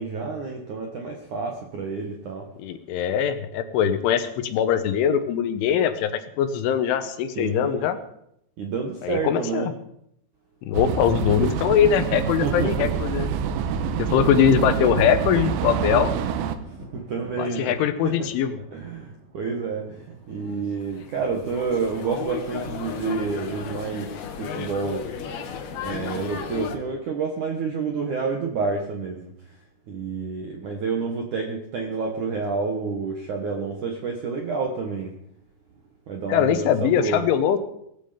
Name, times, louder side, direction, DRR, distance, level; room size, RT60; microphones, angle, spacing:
voice 1, 0.0-2.5 7.4-7.8 8.6-9.7 12.4-12.9 14.3-14.7 16.9-17.7 18.0-18.1 18.7-25.1 25.8-29.3 29.9-35.1 36.1-37.2, right 4 dB, 65° right, 1 dB, 2.0 m, -29 dB
voice 2, 2.6-6.1 6.4-8.0 9.0-9.7 10.6-13.3 14.0-16.1 17.3-18.6 36.3-37.6, left 9 dB, 75° left, 10 dB, 3.3 m, -22 dB
sound 1, 10.7-16.6, right 9 dB, 80° right, 3.7 m, -26 dB
Thunder, 14.1-23.5 25.0-25.8, right 2 dB, 50° right, 4.0 m, -45 dB
sound 2, 20.5-26.8, left 7 dB, 60° left, 3.1 m, -34 dB
18.5 x 15.0 x 5.2 m, 0.73 s
omnidirectional pair, 5.9 m